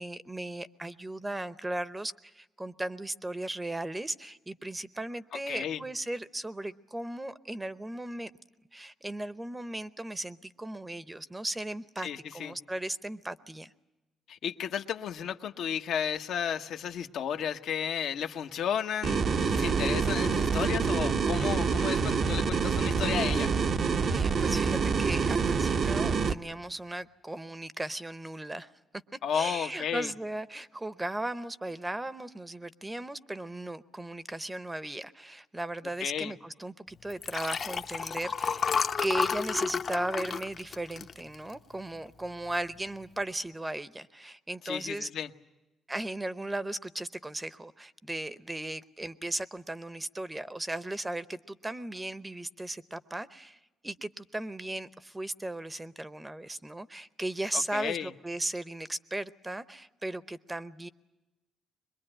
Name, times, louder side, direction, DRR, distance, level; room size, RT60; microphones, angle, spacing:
voice 1, 0.0-8.3 8.7-13.7 24.0-28.7 29.3-45.1 45.9-60.9, right 1 dB, 15° right, 0.8 m, -37 dB
voice 2, 5.5-5.8 12.0-12.5 14.3-23.5 29.2-30.1 36.0-36.3 44.6-45.3 57.5-58.1, left 8 dB, 75° left, 1.0 m, -33 dB
sound 1, 19.0-26.3, right 5 dB, 50° right, 0.8 m, -27 dB
Liquid, 37.1-41.7 42.2-42.5 42.8-42.9, left 6 dB, 50° left, 0.8 m, -31 dB
23.0 x 21.5 x 8.8 m
cardioid pair, 90°, 0 cm